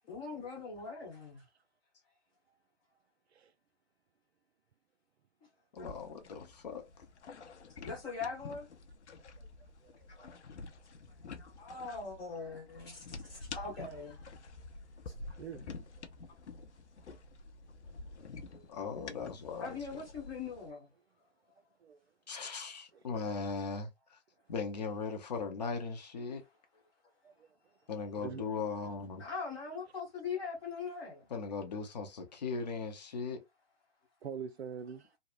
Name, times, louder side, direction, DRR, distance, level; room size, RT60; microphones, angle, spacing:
voice 1, 0.1-1.4 5.8-5.9 7.8-8.7 10.1-10.3 11.4-14.3 17.9-18.0 19.6-20.9 29.2-31.3, left 5 dB, 10° left, 0.9 m, -41 dB
voice 2, 5.7-6.9 18.7-19.7 22.3-24.2 24.5-26.4 27.9-29.2 31.3-33.4, left 5 dB, 40° left, 0.7 m, -38 dB
sound 1, 5.8-20.7, left 4 dB, 80° left, 0.8 m, -49 dB
voice 3, 9.8-10.4 13.2-13.5 15.3-15.9 18.5-18.7 21.8-22.0 22.9-23.0 27.2-27.5 28.2-28.4 34.2-35.1, right 7 dB, 70° right, 0.5 m, -45 dB
3.1 x 2.0 x 2.4 m
hypercardioid pair, 150°, 34 cm